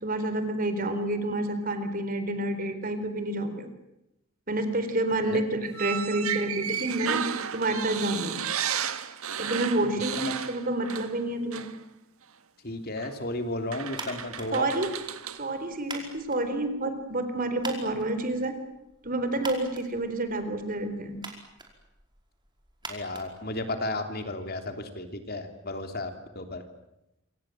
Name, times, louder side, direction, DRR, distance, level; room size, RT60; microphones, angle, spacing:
voice 1, 0.0-3.7 4.5-8.4 9.4-11.7 14.5-14.9 15.4-18.6 19.0-21.2, right 1 dB, 40° right, 9 dB, 4.0 m, -29 dB
sound 1, 5.7-11.2 11.5-11.7 13.0-13.1 13.7-15.4, right 8 dB, 75° right, 1.7 m, -33 dB
voice 2, 12.6-14.7 22.9-26.6, left 2 dB, 45° left, 6 dB, 3.2 m, -33 dB
sound 2, 13.9-24.1, right 3 dB, 20° right, 5.0 m, -45 dB
28.0 x 25.5 x 7.8 m, 0.87 s
head